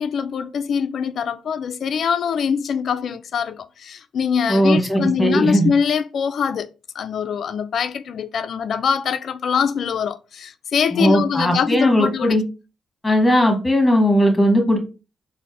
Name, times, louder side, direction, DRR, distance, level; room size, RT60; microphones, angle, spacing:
voice 1, 0.0-6.7 6.9-12.4, left 7 dB, 65° left, 0.3 m, -23 dB
voice 2, 4.5-5.7 10.9-12.4 13.0-14.8, equal, 15° left, 1.3 m, -17 dB
3.9 x 2.0 x 3.3 m
supercardioid pair, 65°, 0 cm